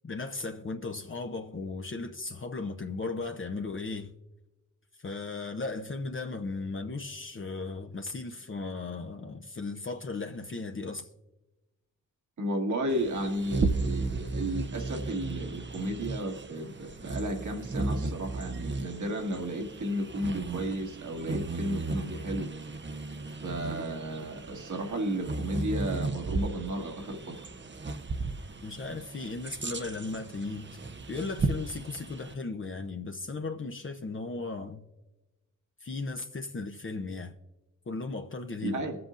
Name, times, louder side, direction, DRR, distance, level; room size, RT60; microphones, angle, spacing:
voice 1, 0.0-4.1 5.0-11.1 28.6-30.8 31.1-34.8 35.8-37.3 37.9-38.8, left 3 dB, 40° left, 0.8 m, -36 dB
voice 2, 12.4-22.5 23.4-27.5 38.6-39.0, right 1 dB, 70° right, 1.9 m, -33 dB
Bird vocalization bird call bird song, 12.9-32.3, right 3 dB, 35° right, 0.8 m, -35 dB
21.5 x 7.7 x 2.6 m
cardioid pair, 50°, 31 cm